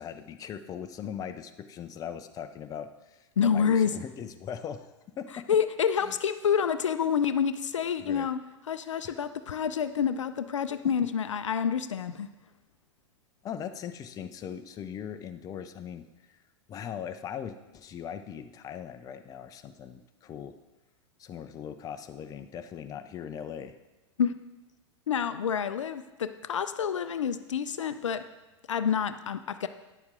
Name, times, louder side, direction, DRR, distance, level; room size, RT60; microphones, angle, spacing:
voice 1, 0.0-5.4 6.0-6.1 8.0-8.3 9.0-9.2 13.4-16.1 16.7-20.6 21.2-23.7, left 8 dB, 20° left, 9 dB, 0.5 m, -40 dB
voice 2, 3.4-3.9 5.5-8.4 8.7-12.3 24.2-24.3 25.1-28.2 28.7-29.7, left 7 dB, 75° left, 11 dB, 0.5 m, -28 dB
9.9 x 7.1 x 3.7 m, 1.1 s
figure-of-eight pair, 95°, 16 cm